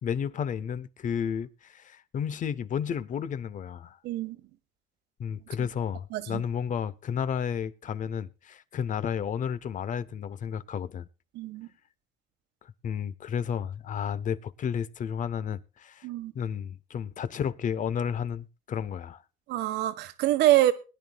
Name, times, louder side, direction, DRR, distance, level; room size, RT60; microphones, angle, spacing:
voice 1, 0.0-4.0 5.2-11.1 12.8-16.1 16.3-19.2, left 8 dB, 50° left, 0.9 m, -32 dB
voice 2, 4.0-4.4 5.6-5.7 6.1-6.4 11.3-11.7 16.0-16.3 19.5-20.7, right 14 dB, 85° right, 1.6 m, -25 dB
21.0 x 11.0 x 2.4 m
cardioid pair, 110°, 17 cm